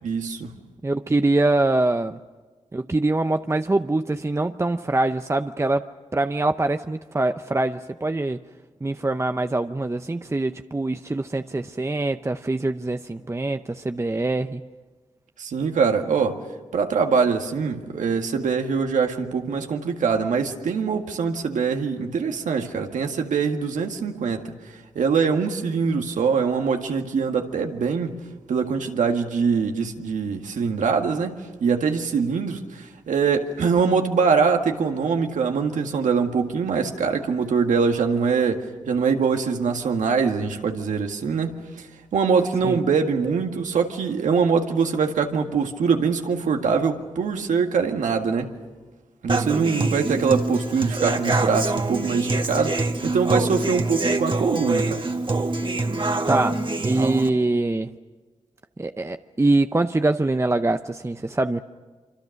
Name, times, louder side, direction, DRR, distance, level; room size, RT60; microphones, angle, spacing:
voice 1, 0.0-0.5 15.4-16.4 16.7-24.4 25.0-28.2 28.5-31.3 31.6-48.5 49.2-55.0, right 5 dB, 85° right, 4 dB, 1.8 m, -23 dB
voice 2, 0.8-2.2 2.7-8.4 8.8-14.6 42.6-42.8 56.3-57.9 58.8-61.6, right 2 dB, 20° right, 8 dB, 0.7 m, -24 dB
Human voice / Acoustic guitar, 49.3-57.3, right 2 dB, 40° right, 1.8 m, -25 dB
25.5 x 25.5 x 6.5 m, 1.4 s
cardioid pair, 45°, 13 cm